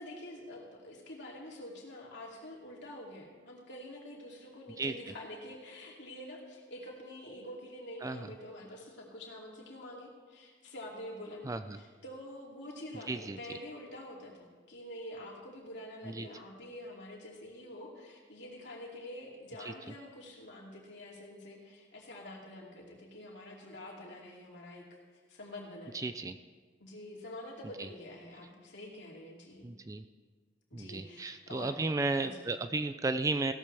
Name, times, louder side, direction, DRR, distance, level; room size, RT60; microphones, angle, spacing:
voice 1, 0.0-24.8 25.1-26.0 26.8-29.8 30.7-31.7 32.1-32.5, left 1 dB, 65° left, -2 dB, 2.7 m, -47 dB
voice 2, 11.5-11.8 13.1-13.4 16.0-16.3 25.9-26.3 27.8-27.9 29.6-30.0 30.7-33.5, right 3 dB, 15° right, 10 dB, 0.3 m, -34 dB
16.0 x 12.5 x 3.4 m, 1.4 s
head